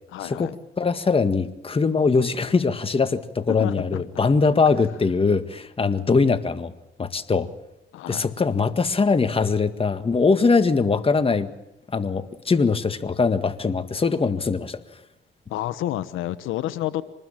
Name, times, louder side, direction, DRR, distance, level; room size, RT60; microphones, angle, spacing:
voice 1, 0.1-0.5 3.6-4.0 7.9-8.3 15.5-17.0, left 13 dB, 90° left, 14 dB, 1.1 m, -29 dB
voice 2, 0.8-6.7 7.0-7.5 8.1-11.5 11.9-14.8, left 4 dB, 30° left, 10 dB, 1.8 m, -22 dB
25.5 x 20.0 x 7.4 m, 0.97 s
cardioid pair, 90°, 20 cm